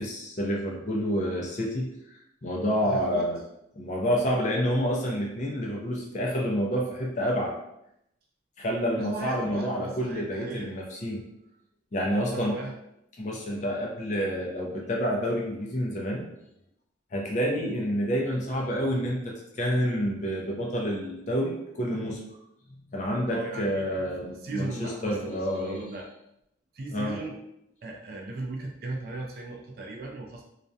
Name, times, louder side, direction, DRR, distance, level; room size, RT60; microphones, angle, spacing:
voice 1, 0.0-2.1 2.4-3.4 3.7-7.5 8.6-11.2 11.9-12.5 13.2-16.3 17.1-22.2 22.9-25.8 26.9-27.2, equal, 40° left, -2 dB, 0.4 m, -28 dB
voice 2, 2.8-3.3 8.9-11.0 12.1-12.7 23.3-26.1 26.7-27.3 27.8-30.4, right 2 dB, 50° right, 0 dB, 0.4 m, -37 dB
2.3 x 2.1 x 2.6 m, 0.79 s
head